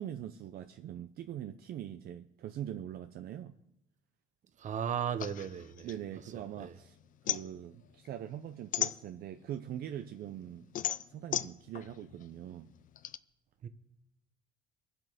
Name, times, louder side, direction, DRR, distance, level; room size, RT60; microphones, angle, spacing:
voice 1, 0.0-3.6 5.8-7.0 7.2-10.7 11.1-12.7, right 11 dB, 65° right, 0.7 m, -42 dB
voice 2, 4.6-5.9 6.3-6.7 13.6-13.7, right 8 dB, 45° right, 1.1 m, -36 dB
sound 1, 5.2-6.7 7.0-9.5 10.0-13.2, left 10 dB, 50° left, 0.6 m, -36 dB
23.0 x 7.8 x 5.0 m
cardioid pair, 110°, 17 cm